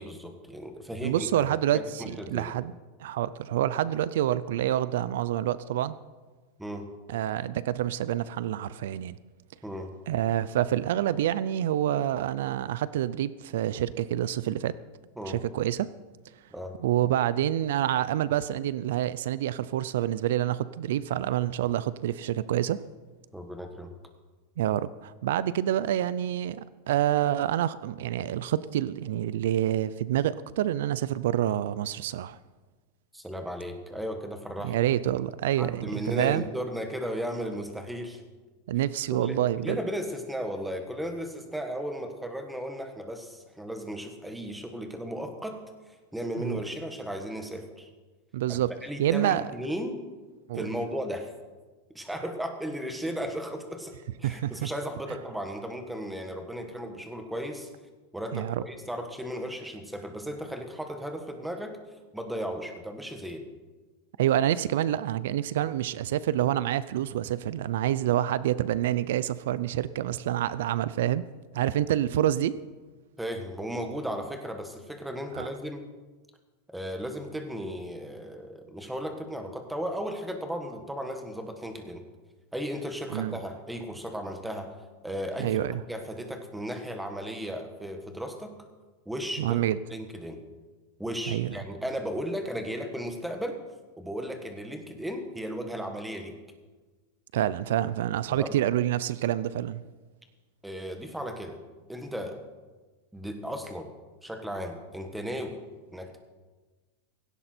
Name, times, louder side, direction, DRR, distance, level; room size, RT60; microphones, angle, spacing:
voice 1, 0.0-1.5 1.7-2.5 6.6-6.9 9.6-9.9 15.2-15.4 16.5-16.8 23.3-23.9 33.1-34.8 35.6-38.2 39.1-39.4 39.6-45.6 45.9-47.9 48.8-50.0 50.5-51.3 51.9-57.7 58.1-61.8 62.1-63.4 73.2-75.8 76.7-82.0 82.5-84.7 85.0-85.6 85.9-88.5 89.0-89.6 89.9-90.4 91.0-93.6 94.0-96.3 98.4-98.5 100.6-101.6 101.9-102.4 103.1-103.9 104.2-105.6 105.9-106.2, equal, 5° right, 5 dB, 1.4 m, -35 dB
voice 2, 1.0-2.7 3.0-6.0 7.1-9.2 10.1-14.7 15.2-15.9 16.8-22.8 24.6-32.4 34.6-36.4 38.7-39.8 46.4-46.6 48.3-48.7 49.0-49.5 50.5-50.7 54.2-54.7 58.3-58.6 64.2-71.2 71.5-72.6 75.3-75.5 83.1-83.4 85.4-85.8 89.4-89.8 91.3-91.6 97.3-99.8, right 12 dB, 75° right, 17 dB, 0.5 m, -27 dB
17.0 x 16.5 x 4.4 m, 1.3 s
supercardioid pair, 170°, 0 cm